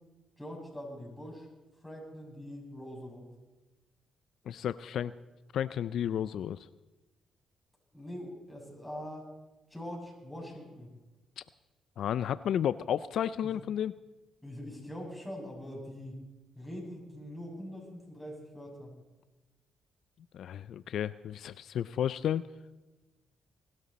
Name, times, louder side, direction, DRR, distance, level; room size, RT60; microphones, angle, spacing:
voice 1, 0.4-1.5 1.8-3.3 7.9-9.3 9.7-10.9 14.4-16.2 16.5-19.0, equal, 5° left, -2 dB, 6.8 m, -43 dB
voice 2, 4.5-5.1 5.5-6.6 11.4-11.5 12.0-13.9 20.3-22.4, left 9 dB, 75° left, 16 dB, 0.4 m, -32 dB
21.0 x 12.5 x 4.2 m, 1.1 s
supercardioid pair, 70°, 0 cm